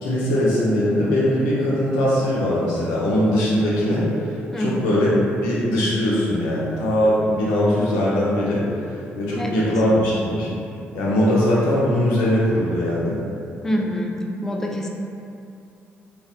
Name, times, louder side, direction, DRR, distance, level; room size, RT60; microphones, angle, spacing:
voice 1, 0.0-5.1 5.4-10.5 10.9-13.2, left 1 dB, 80° left, -6 dB, 0.5 m, -21 dB
voice 2, 4.5-4.9 9.4-9.7 13.6-14.9, equal, 10° left, -1 dB, 0.3 m, -26 dB
2.6 x 2.1 x 2.4 m, 2.5 s
hypercardioid pair, 45°, 6 cm